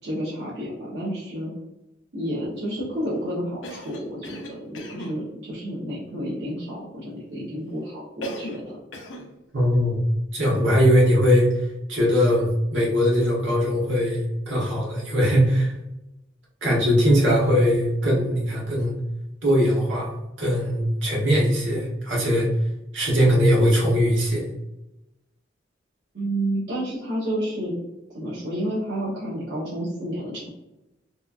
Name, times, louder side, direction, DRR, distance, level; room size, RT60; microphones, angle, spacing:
voice 1, 0.0-1.5 2.1-8.8 10.5-10.7 26.1-27.8 28.1-30.5, right 1 dB, 60° right, -7 dB, 0.7 m, -30 dB
Cough, 3.6-5.2 8.2-8.7 8.9-9.3, left 1 dB, 85° left, 0.5 m, -36 dB
voice 2, 9.5-10.0 10.3-15.7 16.6-19.0 19.4-20.1 20.4-22.5 22.9-24.5, equal, 85° right, -5 dB, 1.1 m, -20 dB
2.9 x 2.3 x 2.3 m, 0.94 s
head